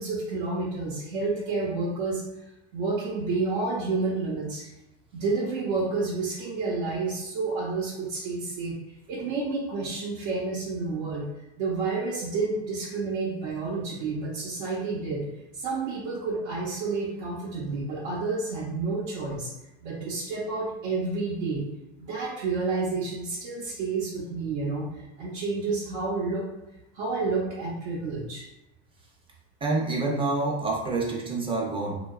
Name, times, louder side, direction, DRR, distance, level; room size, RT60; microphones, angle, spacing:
voice 1, 0.0-2.2 2.7-4.6 5.1-8.7 9.1-11.3 11.6-15.2 15.5-19.5 19.8-21.7 22.0-26.5 26.9-28.4, right 3 dB, 80° right, -6 dB, 0.7 m, -30 dB
voice 2, 29.6-32.0, right 3 dB, 15° right, -3 dB, 0.4 m, -27 dB
2.8 x 2.2 x 2.2 m, 0.95 s
supercardioid pair, 115°, 33 cm